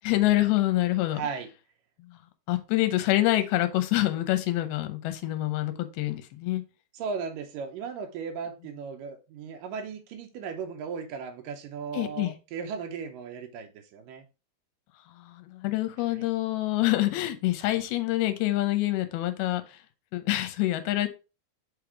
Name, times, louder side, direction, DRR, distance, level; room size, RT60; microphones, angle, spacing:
voice 1, 0.0-1.2 2.0-2.2 2.5-6.6 11.9-12.4 15.2-19.8 20.1-21.1, left 16 dB, 80° left, 2.7 m, -26 dB
voice 2, 1.1-1.5 6.9-14.3 16.1-16.3, right 6 dB, 80° right, 2.1 m, -36 dB
6.5 x 3.5 x 4.7 m
omnidirectional pair, 4.5 m